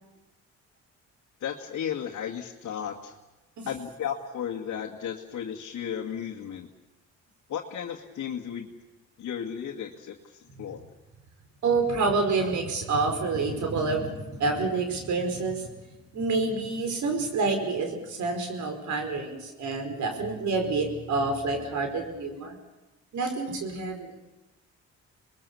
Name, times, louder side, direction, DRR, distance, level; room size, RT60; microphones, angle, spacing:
voice 1, 1.4-3.2 3.7-6.7 7.5-8.7 9.2-10.8, left 8 dB, 65° left, 0 dB, 2.0 m, -34 dB
voice 2, 11.6-15.7 16.1-22.6 23.1-24.1, right 3 dB, 70° right, 5 dB, 5.0 m, -28 dB
26.5 x 21.0 x 7.0 m, 1.1 s
cardioid pair, 90°, 30 cm